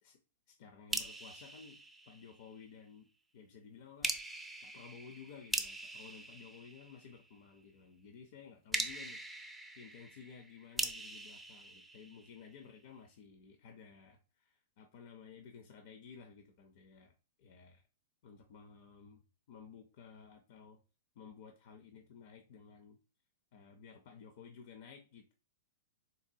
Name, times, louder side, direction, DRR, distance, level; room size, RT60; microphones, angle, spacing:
voice 1, 0.5-1.8 2.1-3.1 3.3-4.1 4.6-9.2 9.8-17.8 18.2-19.2 19.5-20.8 21.2-23.0 23.5-25.3, left 6 dB, 55° left, 5 dB, 0.5 m, -55 dB
sound 1, 0.9-2.6 4.0-7.4 8.7-12.6, right 2 dB, 5° right, 0.4 m, -42 dB
4.0 x 2.2 x 2.7 m, 0.34 s
hypercardioid pair, 140°, 0 cm